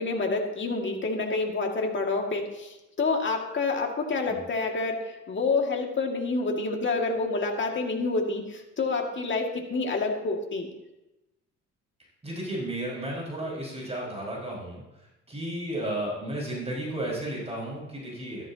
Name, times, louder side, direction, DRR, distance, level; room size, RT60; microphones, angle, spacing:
voice 1, 0.0-10.7, left 3 dB, 40° left, 1 dB, 2.1 m, -28 dB
voice 2, 12.2-14.8 15.3-18.5, right 1 dB, 20° right, -5 dB, 5.2 m, -33 dB
14.0 x 12.5 x 2.9 m, 0.98 s
cardioid pair, 90°, 30 cm